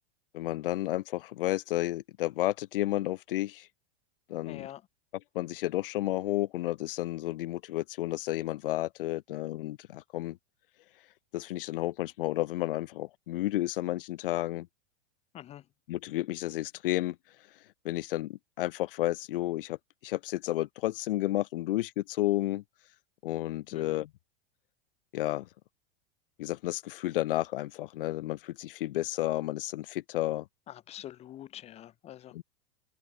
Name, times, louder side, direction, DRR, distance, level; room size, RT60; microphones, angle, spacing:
voice 1, 0.3-3.7 4.3-4.7 5.3-10.4 11.3-14.7 15.9-17.2 17.8-19.8 20.0-22.6 23.2-24.1 25.1-25.5 26.4-30.5 32.3-32.4, left 16 dB, 60° left, 4.2 m, -31 dB
voice 2, 4.5-4.8 15.3-15.6 23.7-24.0 30.7-32.3, left 12 dB, 20° left, 2.4 m, -45 dB
supercardioid pair, 175°, 32 cm